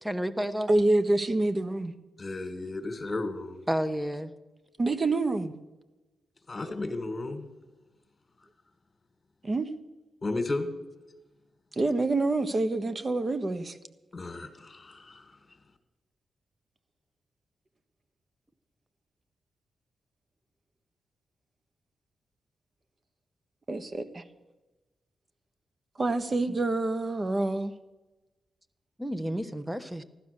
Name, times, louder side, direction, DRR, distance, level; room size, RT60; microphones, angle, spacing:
voice 1, 0.0-0.7 3.7-4.3 26.5-26.6 29.0-30.0, equal, 10° right, 1.1 m, -31 dB
voice 2, 0.7-1.9 4.8-5.5 9.4-9.7 11.8-13.8 23.7-24.2 26.0-27.7, right 2 dB, 40° right, 1.3 m, -27 dB
voice 3, 2.2-3.6 6.5-7.5 10.2-10.7 14.1-15.4, left 2 dB, 40° left, 1.8 m, -34 dB
15.0 x 12.0 x 6.7 m
cardioid pair, 60°, 0 cm